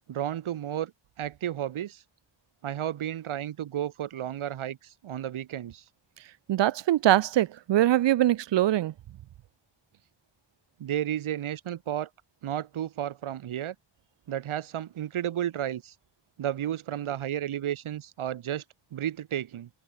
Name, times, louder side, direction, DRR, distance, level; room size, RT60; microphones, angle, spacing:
voice 1, 0.1-0.9 1.2-2.0 2.6-5.8 10.8-12.1 12.4-13.8 14.3-15.9 16.4-18.6 18.9-19.7, right 11 dB, 80° right, 2.1 m, -32 dB
voice 2, 6.5-8.9, right 13 dB, 60° right, 0.7 m, -23 dB
wide cardioid pair, 175°, 48 cm